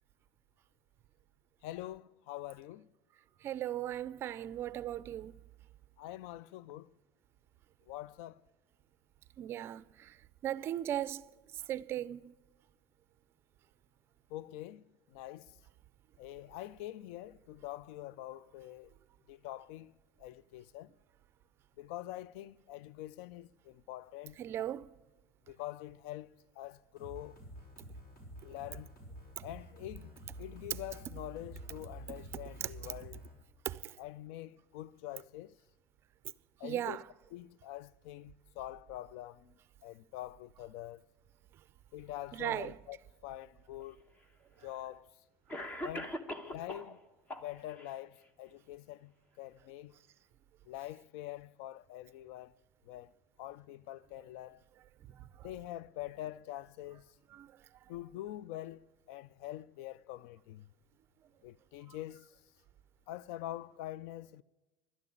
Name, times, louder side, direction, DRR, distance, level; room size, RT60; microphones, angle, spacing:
voice 1, 1.6-2.9 6.0-6.9 7.9-8.4 14.3-15.6 16.2-18.9 19.3-19.9 20.2-20.9 21.8-24.4 25.5-27.4 28.4-28.9 29.4-33.2 34.0-35.6 36.6-37.0 37.3-41.1 41.9-44.0 44.6-45.2 45.8-46.2 46.4-47.0 47.4-49.1 49.4-49.9 50.7-52.5 52.8-53.1 53.4-54.6 55.4-57.1 57.9-60.7 61.4-62.3 63.1-64.4, left 14 dB, 70° left, 0.4 m, -45 dB
voice 2, 3.4-5.3 9.4-10.1 10.4-11.3 11.7-12.3 24.4-24.9 33.7-33.9 36.6-37.0 42.3-42.8 57.3-57.5, right 12 dB, 35° right, 0.5 m, -37 dB
sound 1, 27.0-33.3, right 1 dB, 55° left, 6.4 m, -49 dB
Cough, 43.8-43.9 44.9-45.0 45.5-46.9 47.3-47.9, equal, 20° left, 1.1 m, -41 dB
12.0 x 10.5 x 8.6 m
cardioid pair, 145°, 7 cm